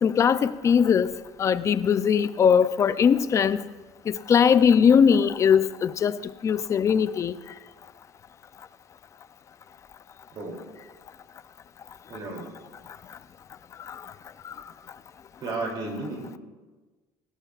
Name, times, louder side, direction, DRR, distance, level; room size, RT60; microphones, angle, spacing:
voice 1, 0.0-1.1 1.4-3.6 4.3-6.2 6.4-7.3, left 7 dB, 30° left, 0.5 m, -20 dB
voice 2, 12.1-12.5 15.4-16.4, right 2 dB, 45° right, 3.0 m, -33 dB
19.5 x 16.0 x 2.5 m
cardioid pair, 145°, 10 cm